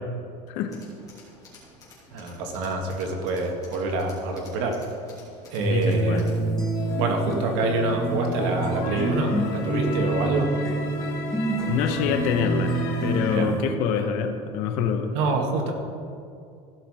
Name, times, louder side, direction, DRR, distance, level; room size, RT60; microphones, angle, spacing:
Tools, 0.7-6.5, left 2 dB, 25° left, 3.1 m, -51 dB
voice 1, 2.1-4.7 5.5-6.3 7.0-10.5 13.2-13.5 15.1-15.7, right 3 dB, 75° right, 2 dB, 1.8 m, -26 dB
sound 1, 5.6-13.6, right 1 dB, 5° left, 1.2 m, -27 dB
voice 2, 5.7-6.3 11.7-12.8 13.0-15.1, left 7 dB, 60° left, 7 dB, 1.0 m, -25 dB
sound 2, 6.7-13.4, left 4 dB, 85° left, 2.5 m, -36 dB
15.5 x 6.0 x 4.9 m, 2.4 s
cardioid pair, 155°, 15 cm